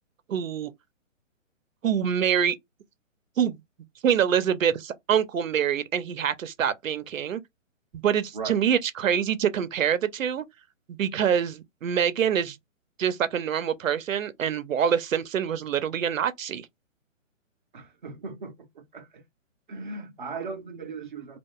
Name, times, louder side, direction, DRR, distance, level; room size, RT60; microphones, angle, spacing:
voice 1, 0.3-0.7 1.8-2.6 3.4-3.6 4.0-7.4 7.9-10.4 10.9-12.6 13.0-16.7, right 8 dB, 80° right, 0.7 m, -25 dB
voice 2, 17.7-19.2 19.7-21.4, right 4 dB, 40° right, 0.6 m, -38 dB
2.4 x 2.2 x 3.7 m
hypercardioid pair, 170°, 39 cm